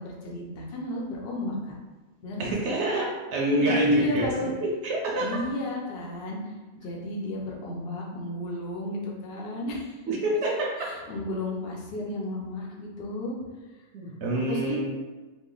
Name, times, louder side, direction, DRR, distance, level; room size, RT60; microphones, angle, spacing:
voice 1, 0.0-1.7 2.2-2.5 3.6-4.5 5.2-10.0 10.8-13.3 14.5-14.8, left 1 dB, 65° left, -2 dB, 0.9 m, -32 dB
voice 2, 2.4-5.3 10.1-10.7 13.9-14.8, right 1 dB, 80° right, -3 dB, 0.9 m, -27 dB
3.0 x 2.2 x 3.8 m, 1.2 s
omnidirectional pair, 1.1 m